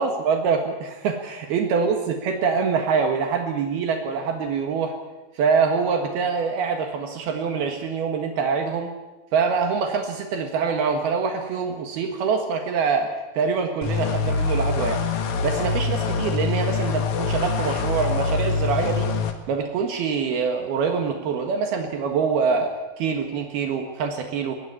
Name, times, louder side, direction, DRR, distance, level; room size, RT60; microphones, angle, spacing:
voice 1, 0.0-5.0 5.4-8.9 9.3-15.1 15.4-19.1 19.5-24.6, right 5 dB, 70° right, 4 dB, 3.5 m, -24 dB
sound 1, 13.8-19.3, left 4 dB, 55° left, 2.7 m, -24 dB
23.5 x 17.0 x 9.9 m, 1.1 s
omnidirectional pair, 4.7 m